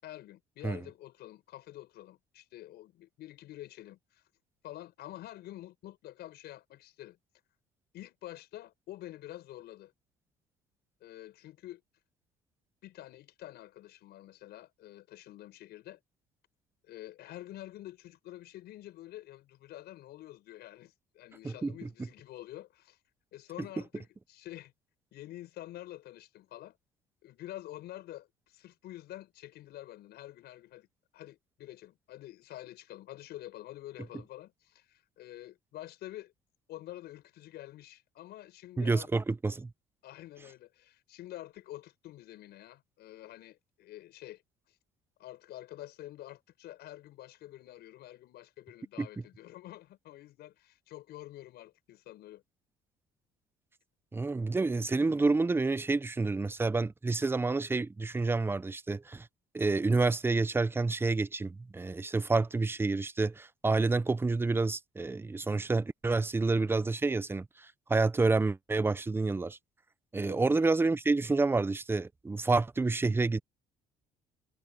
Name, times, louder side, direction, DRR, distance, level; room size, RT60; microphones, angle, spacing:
voice 1, 0.0-4.2 4.6-7.2 7.9-9.9 11.0-11.8 12.8-16.0 16.8-23.0 23.3-24.7 25.1-26.8 27.2-30.9 31.1-36.3 36.7-39.2 40.0-44.4 44.7-44.8 45.2-52.4 70.2-70.5, left 14 dB, 75° left, 6.9 m, -48 dB
voice 2, 38.8-39.7 49.0-49.1 54.1-59.3 59.5-69.6 70.1-73.4, right 3 dB, 15° right, 0.6 m, -29 dB
cardioid pair, 110°, 17 cm